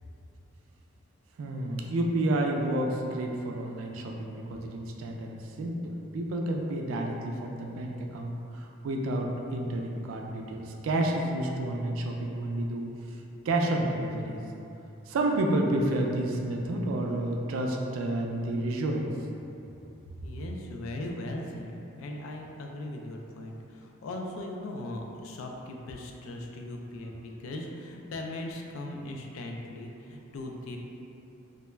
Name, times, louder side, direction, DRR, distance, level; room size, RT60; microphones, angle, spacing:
voice 1, 1.4-13.2 13.4-14.4 15.1-19.1, right 1 dB, 80° right, 1 dB, 0.3 m, -30 dB
voice 2, 20.2-30.8, left 1 dB, 85° left, 1 dB, 0.3 m, -38 dB
2.2 x 2.0 x 3.2 m, 2.8 s
head